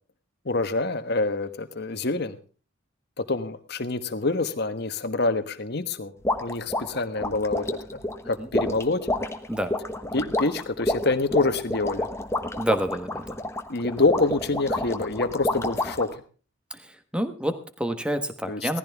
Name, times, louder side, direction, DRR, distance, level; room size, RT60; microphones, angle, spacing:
voice 1, 0.4-2.4 3.2-6.1 6.4-9.1 10.1-12.1 13.7-16.2 18.5-18.7, left 3 dB, 55° left, 10 dB, 1.2 m, -26 dB
sound 1, 6.2-16.1, left 1 dB, 15° left, 1.1 m, -29 dB
voice 2, 12.6-13.3 16.7-18.8, right 1 dB, 5° right, 9 dB, 1.3 m, -29 dB
18.0 x 14.5 x 3.5 m, 0.37 s
head